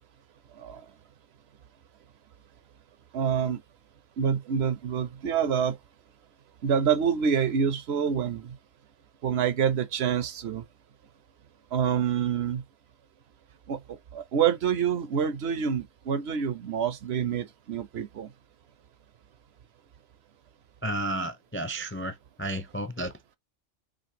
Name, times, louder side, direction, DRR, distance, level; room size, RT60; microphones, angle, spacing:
voice 1, 0.6-0.9 3.1-3.6 4.2-5.8 6.6-8.6 9.2-10.6 11.7-12.6 13.7-18.3, right 7 dB, 65° right, 0.8 m, -27 dB
voice 2, 20.8-23.4, right 1 dB, 20° left, 0.3 m, -33 dB
5.1 x 3.1 x 2.7 m
omnidirectional pair, 1.3 m